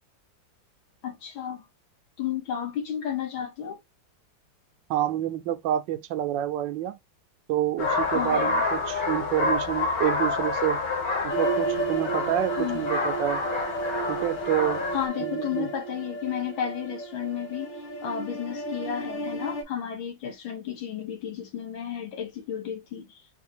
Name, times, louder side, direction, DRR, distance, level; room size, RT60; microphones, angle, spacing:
voice 1, 1.0-1.6 2.2-3.8 8.1-8.6 12.6-12.8 14.9-17.7 18.0-23.2, left 9 dB, 90° left, 2.0 m, -32 dB
voice 2, 4.9-7.0 7.5-10.8 11.2-13.4 14.1-14.9 15.2-15.7, right 12 dB, 75° right, 1.2 m, -28 dB
sound 1, 7.8-15.1, left 3 dB, 50° left, 1.7 m, -28 dB
sound 2, 11.3-19.6, right 2 dB, 70° left, 2.2 m, -33 dB
4.3 x 2.6 x 3.4 m
omnidirectional pair, 2.1 m